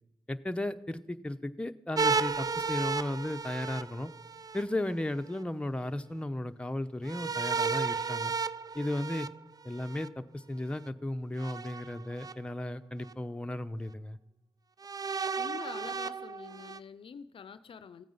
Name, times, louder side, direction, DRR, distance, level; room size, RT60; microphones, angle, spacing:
voice 1, 0.3-4.1 4.5-8.3 8.7-9.3 9.6-14.2, left 1 dB, 10° left, 7 dB, 0.9 m, -35 dB
sound 1, 2.0-4.6 7.1-10.1 11.4-12.3 13.1-13.2 14.8-16.8, right 5 dB, 40° right, 0.5 m, -33 dB
voice 2, 15.4-18.0, left 6 dB, 65° left, 13 dB, 0.6 m, -45 dB
15.0 x 9.1 x 5.7 m, 0.87 s
supercardioid pair, 40°, 10 cm